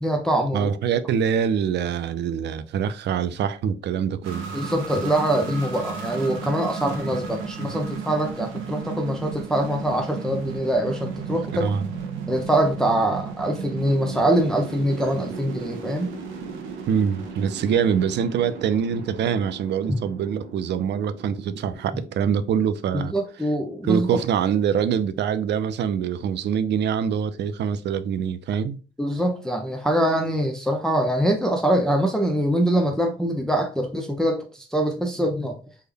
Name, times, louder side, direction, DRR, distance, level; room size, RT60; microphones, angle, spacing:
voice 1, 0.0-0.7 4.5-11.7 12.3-16.2 19.9-20.0 22.9-24.2 29.0-35.6, right 1 dB, 5° left, 0.5 m, -24 dB
voice 2, 0.5-4.4 11.5-11.8 16.9-23.1 23.9-28.8, right 7 dB, 60° right, 0.4 m, -24 dB
sound 1, 4.2-22.7, right 5 dB, 90° right, 0.8 m, -35 dB
3.4 x 2.1 x 3.5 m
cardioid pair, 90°, 20 cm